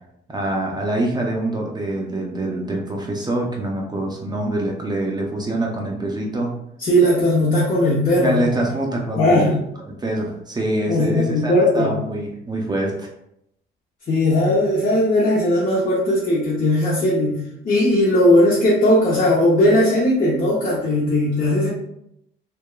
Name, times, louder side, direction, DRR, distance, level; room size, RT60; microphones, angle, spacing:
voice 1, 0.3-6.5 8.2-9.6 9.9-13.1, right 1 dB, 20° right, -1 dB, 0.5 m, -25 dB
voice 2, 6.8-8.4 9.1-9.5 10.9-11.9 14.1-17.4 17.6-21.7, left 1 dB, 40° left, -6 dB, 0.7 m, -18 dB
2.8 x 2.2 x 2.2 m, 0.77 s
cardioid pair, 90°, 20 cm